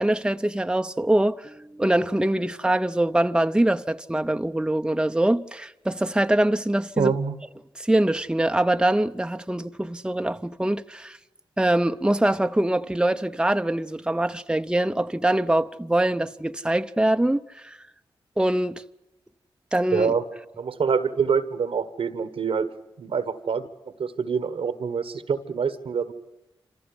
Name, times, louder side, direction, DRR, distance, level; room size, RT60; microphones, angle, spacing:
voice 1, 0.0-7.1 7.8-11.2 11.6-17.8 18.4-18.8 19.7-20.1, right 1 dB, 10° right, 0.7 m, -23 dB
voice 2, 7.0-7.4 19.9-20.2 20.6-22.7 23.0-23.7 24.0-26.1, right 6 dB, 80° right, 1.4 m, -25 dB
26.0 x 14.5 x 9.8 m
cardioid pair, 45°, 9 cm